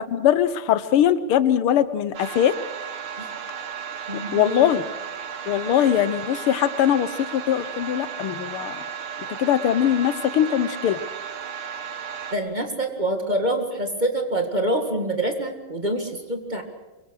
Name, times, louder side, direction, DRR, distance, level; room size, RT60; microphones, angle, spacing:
voice 1, 0.1-2.6 4.1-4.9 5.5-8.8 9.4-11.0, left 10 dB, 85° left, 14 dB, 1.8 m, -21 dB
sound 1, 2.1-12.4, right 7 dB, 75° right, 2.4 m, -34 dB
voice 2, 4.1-4.7 12.3-16.6, right 1 dB, 20° right, 4 dB, 1.9 m, -26 dB
24.5 x 22.5 x 6.4 m, 1.1 s
omnidirectional pair, 2.3 m